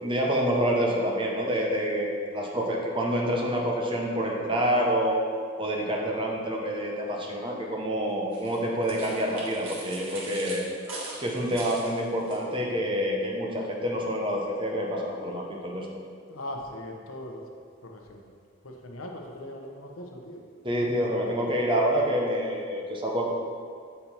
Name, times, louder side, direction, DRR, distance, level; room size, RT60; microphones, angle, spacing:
voice 1, 0.0-5.2 5.6-10.6 11.2-15.9 20.6-23.3, equal, 25° right, -1 dB, 0.8 m, -27 dB
sound 1, 8.3-12.4, right 2 dB, 70° right, 1.4 m, -41 dB
voice 2, 16.3-17.4 17.8-18.3 18.6-20.4 20.8-21.6, left 1 dB, 85° left, 1 dB, 0.8 m, -40 dB
7.1 x 4.4 x 4.3 m, 2.2 s
head